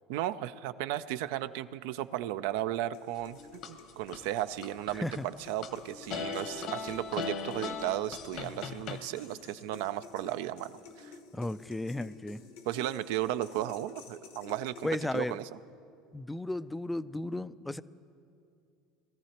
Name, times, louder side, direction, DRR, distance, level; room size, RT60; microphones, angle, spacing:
voice 1, 0.1-11.1 12.7-14.9 15.1-15.4, right 13 dB, 75° right, 13 dB, 0.4 m, -35 dB
sound 1, 2.9-15.5, left 5 dB, 80° left, 1.3 m, -52 dB
sound 2, 3.2-4.2 4.6-5.7 6.1-9.0, left 5 dB, 55° left, 1.0 m, -38 dB
voice 2, 4.9-5.3 11.3-12.4 14.8-15.4 16.1-17.8, left 1 dB, 10° left, 16 dB, 0.3 m, -34 dB
21.0 x 14.0 x 2.9 m, 2.5 s
supercardioid pair, 95°, 0 cm